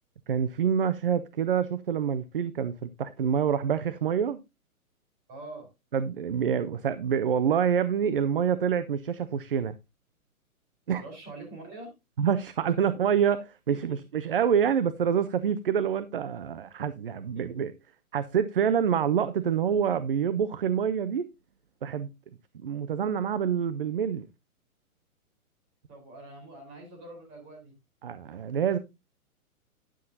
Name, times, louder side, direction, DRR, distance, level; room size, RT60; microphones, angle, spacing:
voice 1, 0.3-4.4 5.9-9.7 10.9-11.0 12.2-17.7 18.1-21.3 21.8-22.1 22.5-24.3 28.0-28.8, right 8 dB, 40° right, 0.4 m, -27 dB
voice 2, 5.3-5.7 11.0-11.9 12.8-12.9 13.7-14.0 17.3-17.4 25.9-27.7, right 2 dB, 25° right, 4.3 m, -44 dB
10.0 x 9.5 x 2.7 m
hypercardioid pair, 160°, 44 cm